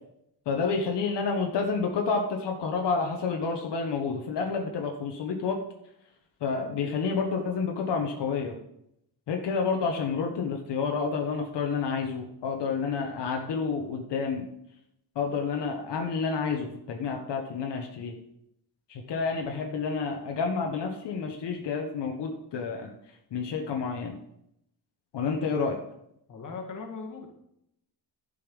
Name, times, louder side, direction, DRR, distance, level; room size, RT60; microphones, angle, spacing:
voice 1, 0.5-5.6 6.4-8.6 9.3-14.5 15.1-18.1 18.9-22.9 23.3-24.2 25.1-25.8, left 5 dB, 80° left, 2 dB, 1.3 m, -29 dB
voice 2, 26.3-27.3, left 4 dB, 45° left, 1 dB, 1.8 m, -39 dB
11.5 x 5.6 x 5.3 m, 0.78 s
wide cardioid pair, 170°, 41 cm